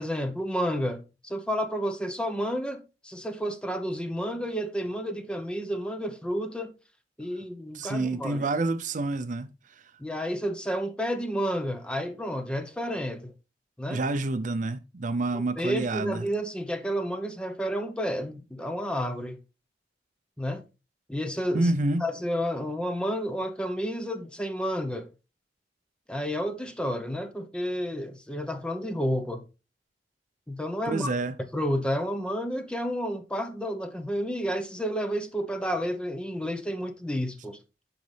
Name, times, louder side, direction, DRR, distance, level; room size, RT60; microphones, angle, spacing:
voice 1, 0.0-6.7 7.2-8.5 10.0-13.3 13.8-14.0 15.3-19.4 20.4-20.6 21.1-21.7 22.0-25.1 26.1-29.4 30.5-31.1 31.5-37.6, equal, 5° left, 0.7 m, -31 dB
voice 2, 7.7-9.5 13.9-16.2 21.5-22.1 30.9-31.3, right 2 dB, 45° right, 0.5 m, -28 dB
11.5 x 4.0 x 3.3 m
head